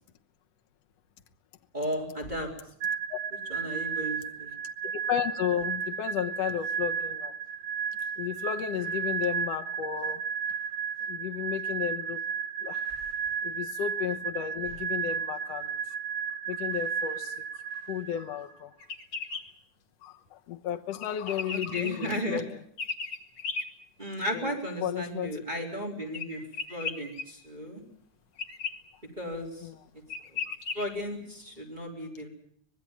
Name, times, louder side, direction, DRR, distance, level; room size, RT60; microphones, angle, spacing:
voice 1, 1.7-2.5 3.5-4.5 21.5-22.4 24.0-26.4 26.7-27.8 29.2-29.7 30.3-30.4 30.7-32.3, equal, 15° right, 4.3 m, -35 dB
sound 1, 2.8-18.4, right 7 dB, 85° right, 3.0 m, -33 dB
voice 2, 4.8-7.3 8.2-10.3 11.1-12.2 12.6-12.8 13.4-15.8 16.5-17.6 17.9-18.7 20.0-22.5 24.3-25.4 29.6-29.8 30.5-30.6, left 10 dB, 65° left, 2.1 m, -33 dB
sound 2, 18.8-19.4 21.0-22.2 22.8-23.6 26.1-27.2 28.4-28.7 29.7-29.8 30.1-30.8, left 5 dB, 45° left, 2.6 m, -35 dB
25.0 x 20.0 x 7.4 m
omnidirectional pair, 3.3 m